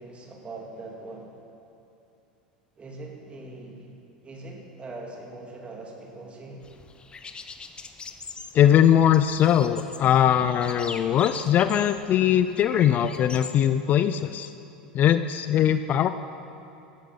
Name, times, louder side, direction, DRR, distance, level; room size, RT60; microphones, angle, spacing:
voice 1, 0.0-1.4 2.8-3.9 4.2-6.6, right 2 dB, 25° right, 0 dB, 3.1 m, -41 dB
sound 1, 6.6-13.7, left 4 dB, 20° left, 1.0 m, -42 dB
voice 2, 8.5-14.5 14.9-16.1, left 10 dB, 40° left, 11 dB, 0.5 m, -21 dB
16.5 x 12.0 x 5.5 m, 2.8 s
hypercardioid pair, 85°, 5 cm